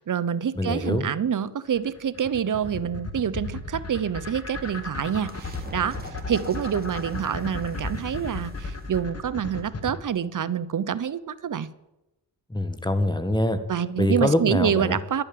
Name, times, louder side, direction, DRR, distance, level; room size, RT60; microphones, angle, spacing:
voice 1, 0.0-11.7 13.7-15.2, right 8 dB, 45° right, 17 dB, 0.9 m, -27 dB
voice 2, 0.5-1.1 12.5-13.6 14.0-15.0, left 1 dB, 10° left, 10 dB, 1.6 m, -24 dB
sound 1, 1.7-10.0, left 3 dB, 35° left, 1.8 m, -34 dB
sound 2, 4.1-10.6, right 1 dB, 20° right, 2.7 m, -46 dB
11.0 x 9.0 x 7.8 m, 0.95 s
cardioid pair, 60°, 42 cm